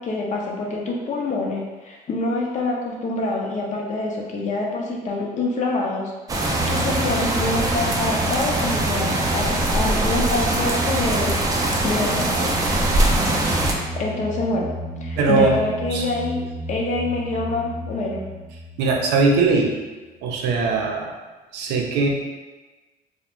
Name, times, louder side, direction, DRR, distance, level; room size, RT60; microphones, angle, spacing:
voice 1, 0.0-12.5 13.5-14.7 15.0-16.4 16.7-18.2, left 2 dB, 45° left, -1 dB, 0.5 m, -26 dB
sound 1, 6.3-13.7, right 2 dB, 20° right, 0.3 m, -22 dB
sound 2, 6.6-19.8, right 1 dB, 35° right, 0.7 m, -33 dB
voice 2, 15.2-15.6 15.9-16.0 18.8-19.8 20.2-21.2 21.5-22.1, right 3 dB, 85° right, 1 dB, 0.4 m, -20 dB
2.4 x 2.1 x 2.9 m, 1.2 s
cardioid pair, 110°, 17 cm